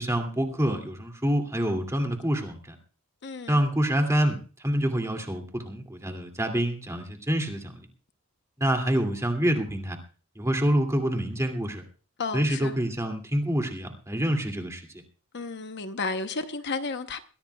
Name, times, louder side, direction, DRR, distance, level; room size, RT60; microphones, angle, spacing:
voice 1, 0.0-2.8 3.5-4.4 4.6-7.9 8.6-10.0 10.4-11.8 12.3-14.8, equal, 15° right, 2.5 m, -26 dB
voice 2, 3.2-3.6 12.2-12.7 15.3-17.2, left 4 dB, 50° left, 0.9 m, -32 dB
22.0 x 16.5 x 2.3 m
head